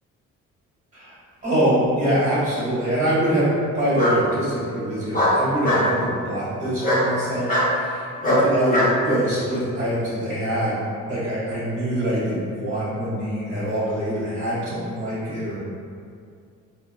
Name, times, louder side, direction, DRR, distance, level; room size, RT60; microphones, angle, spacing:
voice 1, 1.4-3.5 3.7-10.8 11.1-15.6, right 1 dB, 25° right, -10 dB, 1.5 m, -24 dB
Bark, 1.8-2.4 3.9-4.2 5.1-5.9 6.8-7.1 7.5-7.7 8.2-8.9, left 1 dB, 25° left, 1.1 m, -20 dB
4.1 x 2.1 x 2.8 m, 2.3 s
cardioid pair, 90°, 30 cm